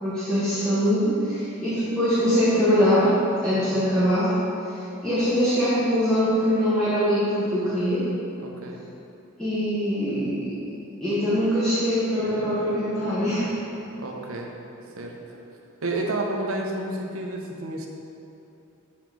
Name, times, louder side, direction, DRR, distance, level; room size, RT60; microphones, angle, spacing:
voice 1, 0.0-3.1 3.4-4.4 4.7-8.1 9.4-10.5 11.0-13.5, equal, 5° left, -14 dB, 1.2 m, -23 dB
voice 2, 3.5-3.8 8.4-8.8 14.0-14.5 15.0-15.1 15.8-17.9, right 2 dB, 90° right, 1 dB, 0.8 m, -30 dB
7.1 x 4.2 x 4.6 m, 2.8 s
head